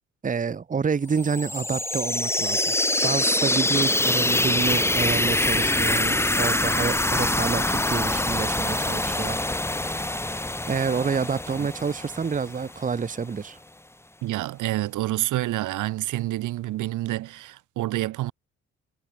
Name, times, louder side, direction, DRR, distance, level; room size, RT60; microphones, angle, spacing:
voice 1, 0.2-2.7 3.0-9.4 10.7-13.6, right 5 dB, 25° right, 1.0 m, -28 dB
sound 1, 1.2-12.9, left 1 dB, 10° left, 1.6 m, -25 dB
voice 2, 14.2-18.3, right 16 dB, 85° right, 1.5 m, -28 dB
cardioid pair, 90°, 30 cm